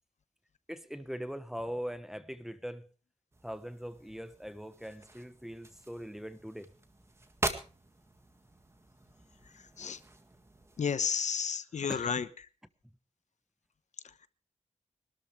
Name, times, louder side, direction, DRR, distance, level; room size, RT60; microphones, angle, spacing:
voice 1, 0.7-2.9 3.4-6.7 11.8-12.3, equal, 5° right, 1.0 m, -41 dB
sound 1, 3.3-11.0, right 2 dB, 20° right, 1.8 m, -43 dB
voice 2, 10.8-12.2, left 6 dB, 65° left, 1.0 m, -31 dB
24.0 x 12.5 x 3.3 m
wide cardioid pair, 165°, 13 cm